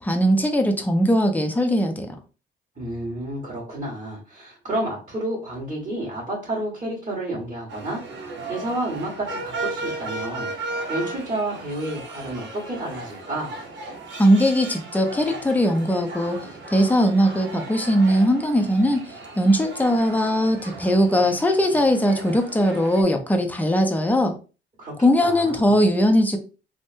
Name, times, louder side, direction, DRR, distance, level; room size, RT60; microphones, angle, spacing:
voice 1, 0.0-2.2 14.2-16.4 16.7-19.1 19.4-24.4 25.0-26.4, equal, 10° left, 0.6 m, -20 dB
voice 2, 2.8-10.5 10.9-13.6 24.8-25.7, right 1 dB, 35° right, 1.6 m, -30 dB
sound 1, 7.7-23.0, right 2 dB, 65° right, 0.8 m, -36 dB
3.5 x 2.1 x 2.6 m
cardioid pair, 90°, 20 cm